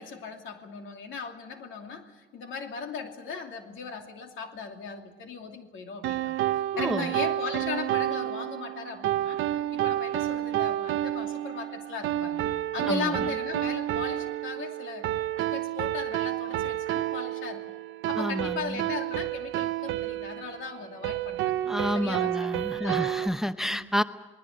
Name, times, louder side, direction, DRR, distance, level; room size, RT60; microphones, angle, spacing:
voice 1, 0.0-6.4 6.8-9.4 9.7-15.1 15.4-17.8 18.1-21.6 21.9-22.3 22.7-23.3 23.6-23.9, left 5 dB, 80° left, 4 dB, 2.8 m, -38 dB
sound 1, 6.0-23.3, right 13 dB, 85° right, 0.7 m, -30 dB
voice 2, 6.7-7.1 12.9-13.1 18.2-18.8 21.7-24.0, equal, ahead, 11 dB, 0.8 m, -29 dB
28.0 x 20.0 x 6.6 m, 1.3 s
cardioid pair, 90°, 20 cm